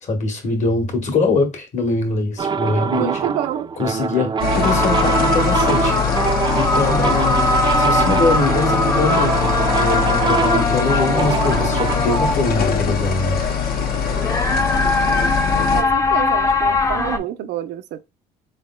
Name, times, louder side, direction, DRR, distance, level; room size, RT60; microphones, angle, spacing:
voice 1, 0.0-3.2 3.8-6.0 6.5-7.4 7.8-13.4, left 2 dB, 45° left, 1.4 m, -23 dB
sound 1, 2.4-12.0, right 6 dB, 25° right, 0.4 m, -23 dB
voice 2, 2.9-3.7 15.7-18.0, right 12 dB, 80° right, 0.5 m, -27 dB
sound 2, 4.4-15.8, left 7 dB, 60° left, 0.9 m, -22 dB
sound 3, 4.6-17.2, left 2 dB, 20° left, 0.6 m, -22 dB
3.9 x 3.4 x 2.2 m
cardioid pair, 110°, 17 cm